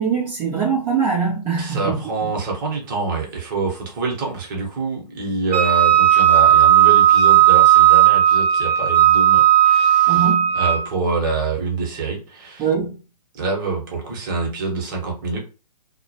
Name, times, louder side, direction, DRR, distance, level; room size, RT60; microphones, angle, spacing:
voice 1, 0.0-2.0 10.1-10.5 12.6-12.9, right 6 dB, 10° right, 0.3 m, -22 dB
voice 2, 1.6-12.7 13.3-15.4, right 3 dB, 30° right, 0.8 m, -26 dB
Wind instrument woodwind instrument, 5.5-10.9, right 12 dB, 75° right, 0.5 m, -14 dB
2.1 x 2.1 x 2.7 m
figure-of-eight pair, 130°, 21 cm